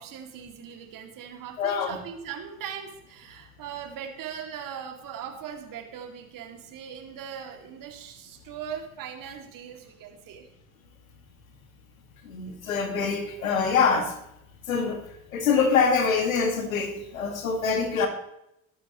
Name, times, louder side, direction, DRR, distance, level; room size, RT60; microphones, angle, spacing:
voice 1, 0.0-10.5, right 8 dB, 55° right, 3 dB, 2.6 m, -40 dB
voice 2, 1.6-2.0 12.2-14.1 14.7-15.0 15.3-18.1, left 5 dB, 85° left, 6 dB, 2.1 m, -24 dB
20.5 x 9.5 x 3.1 m, 0.79 s
hypercardioid pair, 60°, 40 cm